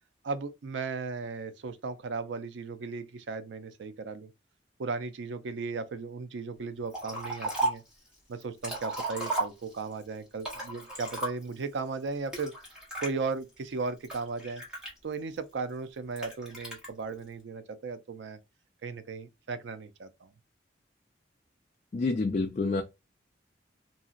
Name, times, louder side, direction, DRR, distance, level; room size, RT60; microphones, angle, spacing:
voice 1, 0.2-4.3 4.8-7.8 8.3-12.5 13.0-14.6 15.0-18.4 18.8-20.3, right 4 dB, 80° right, 0.4 m, -36 dB
Liquid, 6.9-7.9 8.4-9.9 10.4-11.6 12.3-13.1 13.7-15.4 16.2-16.9, right 2 dB, 5° right, 1.0 m, -34 dB
voice 2, 21.9-22.8, left 3 dB, 40° left, 0.3 m, -28 dB
2.8 x 2.7 x 2.4 m
head